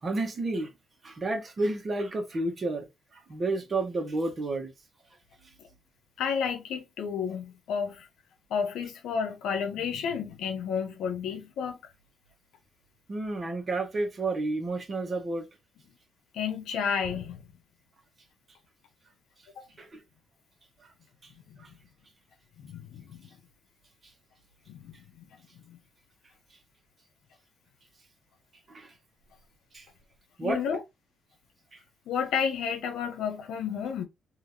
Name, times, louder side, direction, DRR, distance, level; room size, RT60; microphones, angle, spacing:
voice 1, 0.0-0.7 1.0-2.9 3.1-4.7 13.1-15.5 19.8-20.0 20.8-20.9 21.2-21.3 21.6-21.7 28.7-28.9 29.7-29.9 30.4-30.6 31.7-31.8, right 2 dB, 40° right, 1.2 m, -31 dB
voice 2, 6.2-8.1 8.5-11.8 16.3-17.5 19.6-19.7 21.5-21.6 22.6-23.3 24.7-25.3 25.7-25.8 30.4-30.8 32.1-34.0, left 7 dB, 80° left, 0.8 m, -31 dB
3.4 x 2.7 x 2.7 m
cardioid pair, 90°, 0 cm